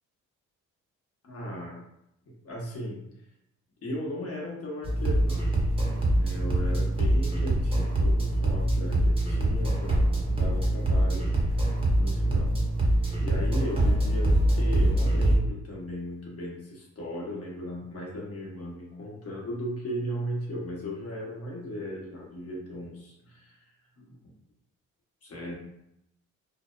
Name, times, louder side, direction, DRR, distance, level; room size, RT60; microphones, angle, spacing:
voice 1, 1.2-1.8 2.4-3.0 3.8-5.5 6.0-11.3 12.0-12.5 13.2-23.6 24.0-24.2 25.2-25.6, equal, 50° left, -3 dB, 0.9 m, -37 dB
sound 1, 4.8-15.4, right 1 dB, 20° right, 0.7 m, -24 dB
2.7 x 2.0 x 2.2 m, 0.81 s
cardioid pair, 90°, 30 cm